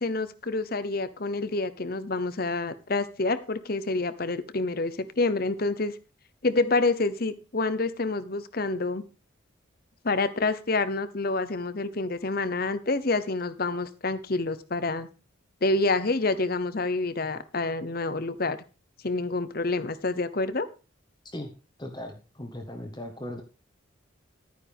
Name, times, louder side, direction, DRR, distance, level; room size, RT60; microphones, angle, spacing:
voice 1, 0.0-5.9 6.4-9.0 10.0-15.1 15.6-18.6 19.0-20.7, left 3 dB, 50° left, 14 dB, 0.9 m, -27 dB
voice 2, 21.8-23.4, left 1 dB, 20° left, 3 dB, 1.4 m, -38 dB
12.5 x 9.5 x 3.6 m, 0.32 s
head